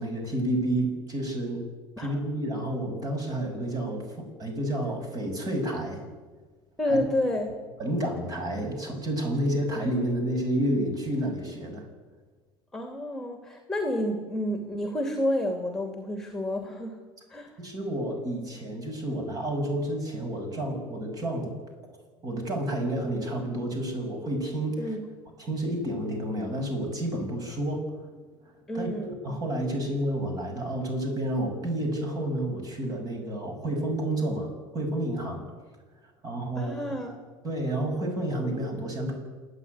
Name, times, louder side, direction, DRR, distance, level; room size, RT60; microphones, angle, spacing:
voice 1, 0.0-1.7 2.0-6.1 6.8-7.0 7.8-11.9 17.6-21.5 21.9-22.0 22.2-25.0 25.4-27.8 28.7-35.5 36.2-36.8 37.4-39.1, right 1 dB, 35° right, 3 dB, 6.6 m, -30 dB
voice 2, 6.8-7.6 12.7-17.0 17.3-17.5 24.8-25.0 28.7-29.1 36.6-37.1, left 1 dB, 5° left, 4 dB, 2.7 m, -29 dB
27.5 x 9.8 x 9.7 m, 1.4 s
supercardioid pair, 120°, 11 cm